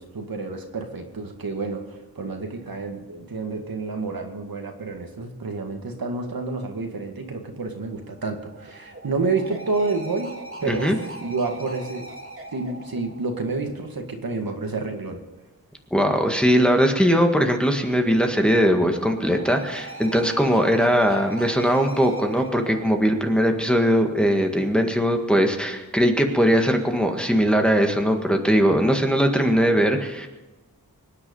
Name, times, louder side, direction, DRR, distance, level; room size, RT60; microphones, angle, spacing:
voice 1, 0.0-10.3 10.6-10.9 11.2-12.1 12.5-15.2, right 3 dB, 70° right, 3 dB, 2.1 m, -29 dB
sound 1, 7.7-14.2 17.7-24.2, right 2 dB, 35° right, 3.3 m, -41 dB
voice 2, 10.7-11.0 15.9-30.3, equal, 5° left, 3 dB, 1.7 m, -20 dB
24.5 x 9.8 x 5.5 m, 1.1 s
wide cardioid pair, 100°, 36 cm